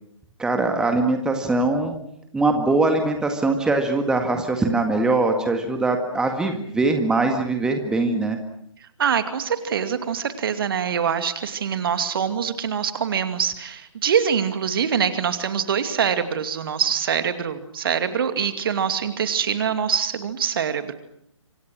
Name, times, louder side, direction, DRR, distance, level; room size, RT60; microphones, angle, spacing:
voice 1, 0.4-1.9 2.3-8.4, right 2 dB, 5° right, 5 dB, 1.9 m, -22 dB
voice 2, 9.0-20.9, right 7 dB, 45° right, 9 dB, 2.5 m, -24 dB
27.5 x 26.0 x 6.3 m, 0.74 s
figure-of-eight pair, 135°, 16 cm